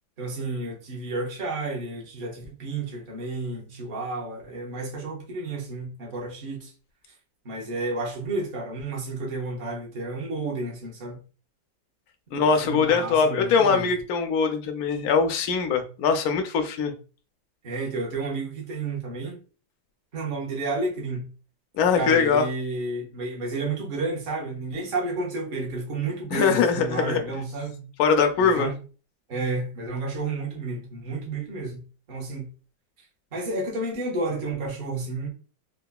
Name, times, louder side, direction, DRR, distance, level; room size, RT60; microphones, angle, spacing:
voice 1, 0.2-6.7 7.4-11.2 12.3-13.9 17.6-19.4 20.1-21.3 21.9-27.9 28.4-28.8 29.3-32.5 33.3-35.3, right 3 dB, 40° right, 0.8 m, -31 dB
voice 2, 12.3-16.9 21.8-22.4 26.3-27.2 28.0-28.7, left 5 dB, 80° left, 0.8 m, -22 dB
3.7 x 2.8 x 2.2 m
omnidirectional pair, 2.2 m